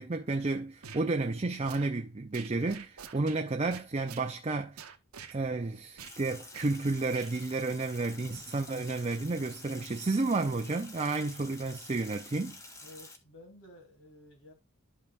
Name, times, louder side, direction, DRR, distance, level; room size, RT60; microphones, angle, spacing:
voice 1, 0.0-4.8 5.3-12.6, right 3 dB, 30° right, 0.5 m, -31 dB
sound 1, 0.8-1.1 1.6-1.9 2.3-3.4 3.7-4.3 4.8-5.4 6.0-6.2 6.5-6.7 7.1-7.3, right 7 dB, 85° right, 1.0 m, -47 dB
Sink (filling or washing), 6.0-13.2, left 2 dB, 15° left, 0.9 m, -49 dB
voice 2, 12.8-14.5, left 1 dB, 65° left, 3.0 m, -53 dB
12.0 x 5.4 x 2.5 m
head